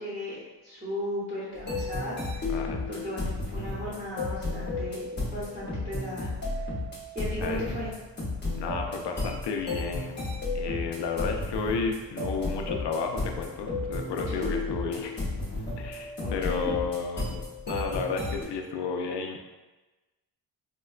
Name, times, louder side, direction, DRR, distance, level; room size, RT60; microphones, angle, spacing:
voice 1, 0.0-6.7 7.1-7.9 14.3-14.5 16.2-16.7, equal, 15° right, -10 dB, 0.8 m, -36 dB
sound 1, 1.5-18.4, left 2 dB, 25° left, 0.8 m, -33 dB
voice 2, 2.5-2.8 7.4-7.6 8.5-10.2 10.5-15.2 15.8-19.5, left 5 dB, 70° left, 3 dB, 0.5 m, -32 dB
4.5 x 2.2 x 2.3 m, 1.1 s
wide cardioid pair, 165°, 43 cm